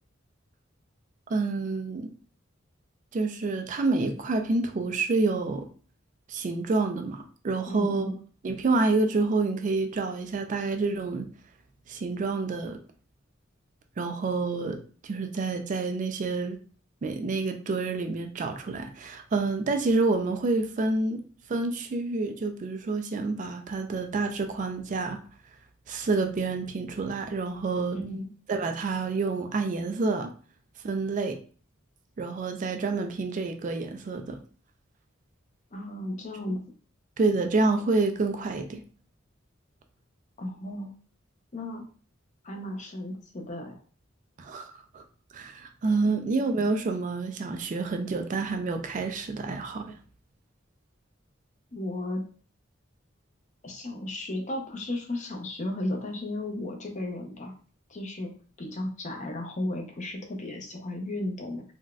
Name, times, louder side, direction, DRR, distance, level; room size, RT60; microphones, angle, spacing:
voice 1, 1.3-2.1 3.1-5.7 6.3-8.1 8.4-11.3 11.9-12.8 14.0-16.6 17.0-21.2 21.5-25.2 25.9-28.0 28.5-30.3 30.8-31.4 32.2-34.4 37.2-38.8 44.4-45.0 45.3-50.0, right 3 dB, 40° right, 0.3 m, -28 dB
voice 2, 7.7-8.2 27.9-28.3 35.7-36.6 40.4-40.9 41.5-41.8 42.4-43.8 51.7-52.2 53.6-57.5 57.9-58.3 58.6-61.6, left 1 dB, 35° left, 0.6 m, -34 dB
3.9 x 2.2 x 2.3 m
head